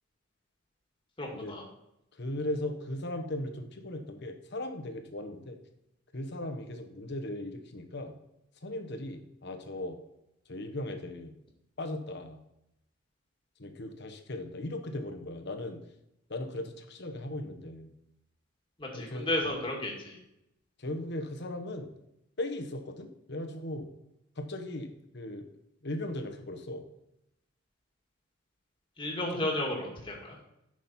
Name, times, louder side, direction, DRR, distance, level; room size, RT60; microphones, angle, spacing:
voice 1, 1.2-1.6 18.8-20.2 29.0-30.4, left 1 dB, 25° left, 0 dB, 2.0 m, -33 dB
voice 2, 2.1-5.6 6.1-8.1 8.6-10.0 10.5-11.3 11.8-12.4 13.6-15.8 16.3-17.9 18.9-19.3 20.8-21.9 22.4-23.9 24.4-25.5 25.8-26.8 29.2-29.4, left 1 dB, 55° left, 5 dB, 1.2 m, -38 dB
9.4 x 6.2 x 4.3 m, 0.83 s
head